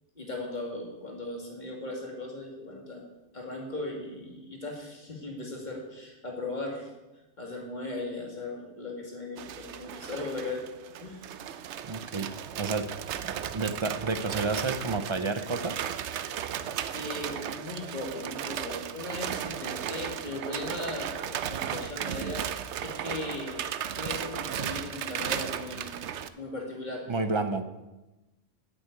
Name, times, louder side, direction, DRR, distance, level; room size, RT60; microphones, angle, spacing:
voice 1, 0.2-3.0 3.3-6.9 7.4-10.7 11.0-11.2 16.3-16.4 16.9-22.4 22.8-23.7 23.9-26.0 26.4-27.1, left 2 dB, 35° left, 0 dB, 2.5 m, -38 dB
sound 1, 9.4-26.3, right 9 dB, 70° right, 0.9 m, -35 dB
voice 2, 11.9-12.3 12.6-12.9 13.2-15.9 27.1-27.6, right 3 dB, 30° right, 10 dB, 0.6 m, -30 dB
8.7 x 8.1 x 8.1 m, 1.0 s
omnidirectional pair, 1.3 m